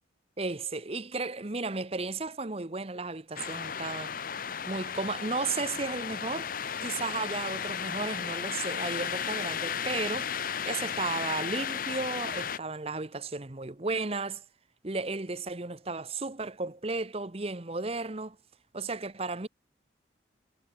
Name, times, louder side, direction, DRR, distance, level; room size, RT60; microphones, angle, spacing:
voice 1, 0.4-4.2 4.7-6.5 6.8-10.3 10.6-14.4 14.8-18.4 18.7-19.5, right 3 dB, 30° right, 0.9 m, -34 dB
sound 1, 3.4-12.6, left 7 dB, 45° left, 0.8 m, -34 dB
head